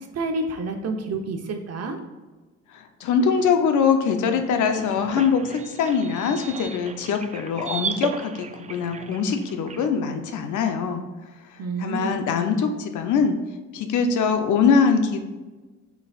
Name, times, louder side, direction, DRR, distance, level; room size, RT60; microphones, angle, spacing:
voice 1, 0.1-2.0 11.6-12.2, right 3 dB, 55° right, 4 dB, 1.0 m, -29 dB
voice 2, 2.7-11.0 11.8-13.4 13.7-15.2, left 6 dB, 75° left, 6 dB, 0.8 m, -23 dB
sound 1, 4.4-9.9, right 6 dB, 25° right, 0.4 m, -35 dB
8.8 x 4.9 x 2.5 m, 1.3 s
cardioid pair, 90°, 30 cm